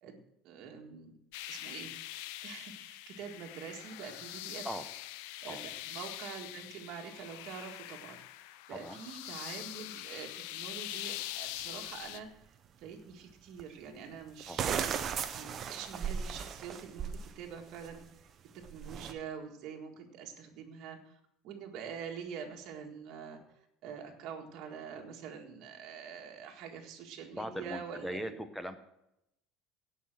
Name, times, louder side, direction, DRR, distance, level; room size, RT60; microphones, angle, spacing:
voice 1, 0.0-1.2 1.4-4.7 5.4-14.9 15.4-18.0 18.7-21.1 21.4-23.4 23.8-28.4, right 7 dB, 50° right, 2 dB, 1.8 m, -45 dB
sound 1, 1.3-12.2, left 15 dB, 80° left, 0.5 m, -43 dB
sound 2, 11.6-11.7 13.6-13.7 14.4-17.3 17.7-18.0 18.6-19.1, right 7 dB, 30° right, 0.7 m, -36 dB
voice 2, 27.3-28.8, equal, ahead, 9 dB, 0.7 m, -39 dB
16.5 x 5.7 x 6.1 m, 0.83 s
cardioid pair, 175°, 0 cm